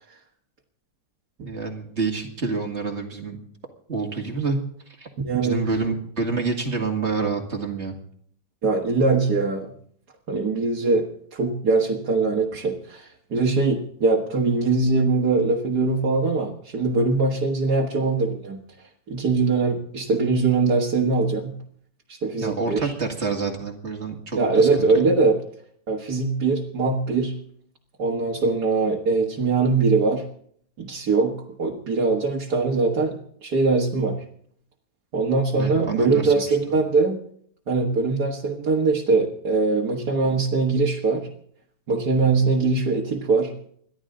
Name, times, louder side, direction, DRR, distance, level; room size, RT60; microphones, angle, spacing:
voice 1, 1.4-3.4 3.9-4.6 5.0-5.1 5.4-7.9 22.4-24.9 35.5-36.6, right 4 dB, 35° right, 3 dB, 2.3 m, -28 dB
voice 2, 5.2-5.6 8.6-9.7 10.3-11.1 11.3-18.6 19.1-21.6 22.1-22.9 24.3-25.4 25.9-27.3 28.0-30.2 30.8-34.2 35.1-37.2 37.7-41.3 41.9-43.5, right 3 dB, 60° right, -2 dB, 2.2 m, -22 dB
30.0 x 12.0 x 3.8 m, 0.63 s
omnidirectional pair, 2.0 m